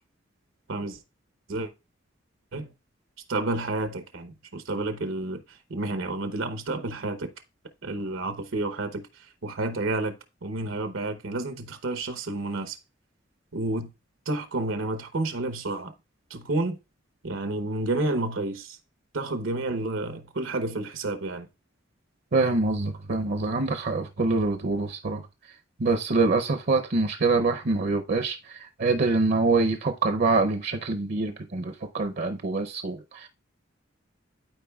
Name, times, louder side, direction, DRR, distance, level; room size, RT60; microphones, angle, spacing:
voice 1, 0.7-1.0 1.5-1.7 2.5-2.7 3.3-7.3 7.8-10.1 10.4-12.8 13.5-13.9 14.3-15.9 16.3-16.8 17.2-18.8 19.1-21.5, right 2 dB, 85° right, 0.9 m, -30 dB
voice 2, 22.3-25.2 25.8-33.3, right 3 dB, 50° right, 0.6 m, -25 dB
12.0 x 4.6 x 2.3 m
head